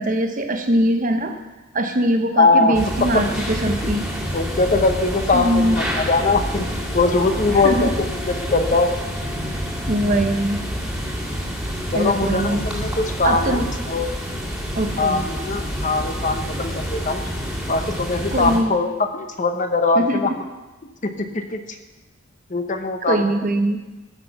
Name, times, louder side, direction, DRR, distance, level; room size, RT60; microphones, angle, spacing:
voice 1, 0.0-1.4 1.7-4.1 5.3-5.8 7.5-7.9 9.9-10.6 11.9-12.7 13.2-13.7 14.8-15.2 18.3-18.8 19.9-20.3 23.0-23.8, right 1 dB, 40° right, 6 dB, 0.9 m, -21 dB
voice 2, 2.4-2.7 3.1-3.2 3.7-3.9 4.3-6.7 6.9-7.9 8.5-8.9 11.9-14.1 15.0-17.2 17.7-20.3 21.0-21.8 22.5-23.2, left 3 dB, 40° left, 6 dB, 0.9 m, -21 dB
sound 1, 2.7-18.6, equal, 5° right, 1.9 m, -28 dB
13.5 x 6.0 x 5.9 m, 1.1 s
head